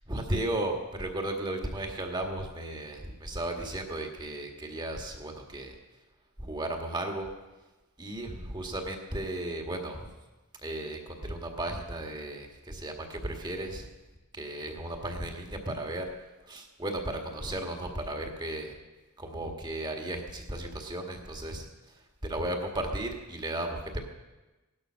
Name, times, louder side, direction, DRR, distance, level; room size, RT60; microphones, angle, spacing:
voice 1, 0.0-5.8 6.4-7.3 8.0-10.1 10.6-13.9 14.3-16.1 16.4-18.7 19.2-24.0, right 1 dB, 20° right, 3 dB, 1.8 m, -35 dB
17.5 x 12.0 x 6.4 m, 1.1 s
head